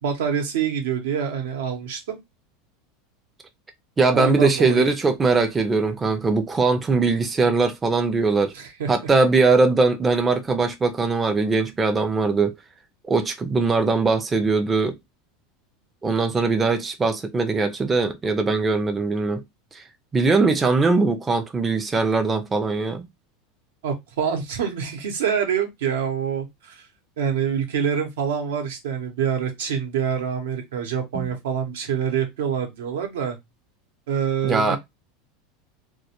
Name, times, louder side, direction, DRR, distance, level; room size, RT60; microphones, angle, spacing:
voice 1, 0.0-2.2 4.1-4.8 8.5-8.9 23.8-26.8 27.2-33.4 34.1-34.8, right 7 dB, 85° right, 0.7 m, -26 dB
voice 2, 4.0-8.5 8.9-12.5 13.1-15.0 16.0-19.4 19.7-19.8 20.1-23.1 31.1-31.3 34.4-34.8, right 3 dB, 15° right, 0.3 m, -21 dB
2.1 x 2.1 x 2.8 m
supercardioid pair, 135°, 0 cm